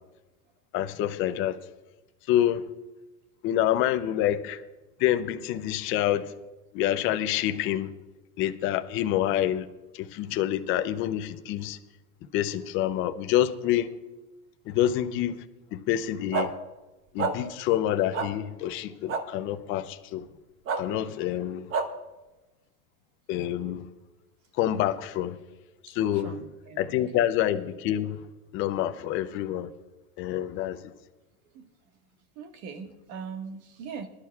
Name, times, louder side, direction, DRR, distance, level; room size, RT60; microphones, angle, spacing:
voice 1, 0.7-1.6 2.3-2.6 3.4-4.6 5.0-6.3 6.7-7.9 8.4-9.7 9.9-11.8 12.3-13.9 14.7-15.4 15.7-16.5 17.1-20.2 20.8-21.7 23.3-23.9 24.6-25.4 25.8-26.4 26.8-28.2 28.5-29.7 30.2-30.9, left 12 dB, 25° left, 0.5 m, -27 dB
sound 1, 16.3-16.5 17.2-17.3 18.1-18.3 19.1-19.2 20.7-20.8 21.7-21.9, right 5 dB, 25° right, 0.9 m, -26 dB
voice 2, 26.2-26.8 31.5-31.7 32.4-34.1, right 6 dB, 60° right, 1.7 m, -40 dB
21.5 x 11.5 x 2.4 m
supercardioid pair, 140°, 48 cm